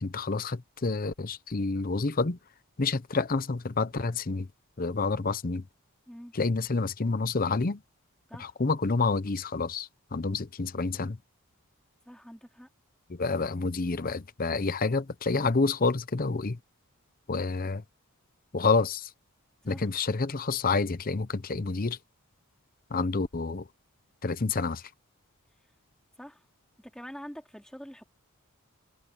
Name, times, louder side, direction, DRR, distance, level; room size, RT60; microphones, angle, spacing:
voice 1, 0.0-2.4 2.8-4.5 4.8-5.6 6.3-7.8 8.4-11.2 13.1-16.6 17.3-17.8 18.5-19.1 19.6-22.0 22.9-23.7 24.2-24.9, left 3 dB, 40° left, 0.7 m, -28 dB
voice 2, 12.1-12.7 19.6-19.8 25.6-25.7 26.2-26.5 26.8-28.1, equal, 5° left, 3.5 m, -45 dB
head